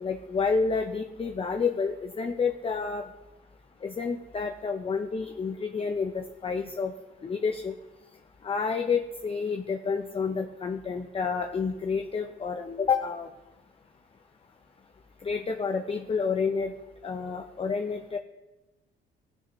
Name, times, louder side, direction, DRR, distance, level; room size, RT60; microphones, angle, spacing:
voice 1, 0.0-3.1 3.8-6.9 7.2-7.7 8.4-13.3 15.2-16.7 17.0-18.2, left 5 dB, 30° left, 4 dB, 0.6 m, -29 dB
15.0 x 6.2 x 3.1 m, 1.1 s
cardioid pair, 90°, 20 cm